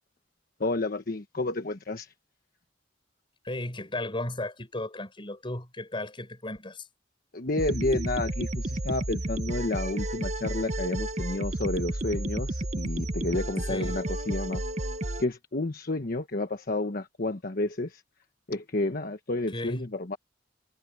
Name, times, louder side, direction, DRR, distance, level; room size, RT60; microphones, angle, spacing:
voice 1, 0.6-2.1 7.3-14.6 15.2-18.0 18.5-20.2, left 2 dB, 55° left, 1.2 m, -30 dB
voice 2, 3.4-6.9 13.7-14.0 19.5-19.9, left 1 dB, 30° left, 4.7 m, -35 dB
sound 1, 7.6-15.2, right 1 dB, 40° right, 1.2 m, -32 dB
head